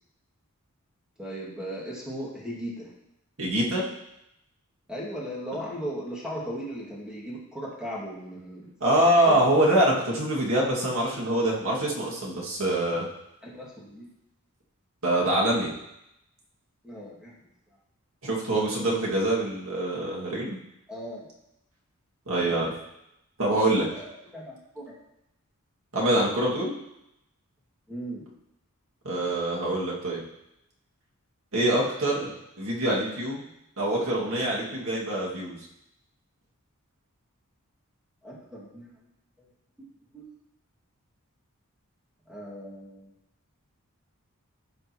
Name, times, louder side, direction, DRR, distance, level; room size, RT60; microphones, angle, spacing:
voice 1, 1.2-2.9 4.9-8.7 9.1-9.8 13.4-14.1 16.8-17.3 18.6-19.3 20.9-21.3 23.9-24.9 27.9-28.2 38.2-39.0 39.8-39.9 40.1-40.3 42.3-43.1, equal, 5° right, -6 dB, 2.3 m, -37 dB
voice 2, 3.4-3.8 8.8-13.1 15.0-15.7 18.2-20.6 22.3-22.7 23.4-23.9 25.9-26.7 29.0-30.2 31.5-33.5 33.8-35.6, right 1 dB, 65° right, -4 dB, 2.2 m, -25 dB
15.0 x 5.3 x 3.1 m, 0.85 s
head